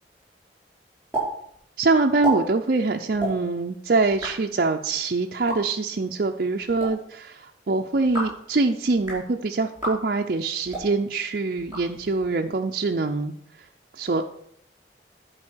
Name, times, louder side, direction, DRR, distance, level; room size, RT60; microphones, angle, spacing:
sound 1, 1.1-1.3 1.5-1.6 2.0-2.3 3.1-3.3 4.0-4.3 5.3-5.6 6.6-6.9 7.9-8.4 8.9-9.2 9.7-9.9 10.6-10.9 11.6-12.3, right 3 dB, 10° right, 4.9 m, -30 dB
voice 1, 1.8-13.3 14.0-14.2, right 3 dB, 55° right, 2 dB, 0.5 m, -24 dB
11.0 x 4.8 x 6.2 m, 0.69 s
head